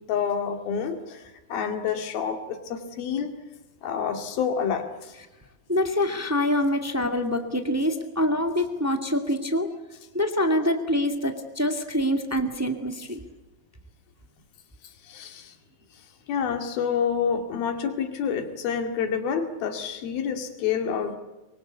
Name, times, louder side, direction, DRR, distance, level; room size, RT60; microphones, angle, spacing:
voice 1, 0.1-1.2 1.5-3.3 3.8-5.1 15.0-15.5 16.3-21.2, left 7 dB, 80° left, 6 dB, 4.1 m, -28 dB
voice 2, 5.7-9.7 10.1-13.2, left 1 dB, 5° right, 5 dB, 1.1 m, -25 dB
24.0 x 23.5 x 8.2 m, 1.1 s
omnidirectional pair, 4.2 m